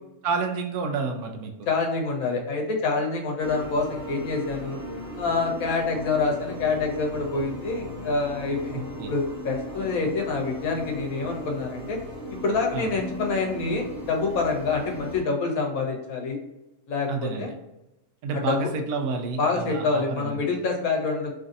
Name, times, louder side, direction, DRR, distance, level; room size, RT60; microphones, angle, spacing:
voice 1, 0.2-1.5 8.7-9.1 12.7-12.9 17.1-17.5 18.2-20.4, right 4 dB, 85° right, 4 dB, 1.1 m, -29 dB
voice 2, 1.7-4.8 5.2-8.8 9.1-12.0 12.3-16.4 16.9-17.5 18.3-18.6 19.4-21.3, left 4 dB, 75° left, 1 dB, 1.1 m, -26 dB
sound 1, 3.4-15.2, left 1 dB, 15° left, 1.2 m, -37 dB
3.0 x 2.6 x 2.5 m, 0.92 s
omnidirectional pair, 1.5 m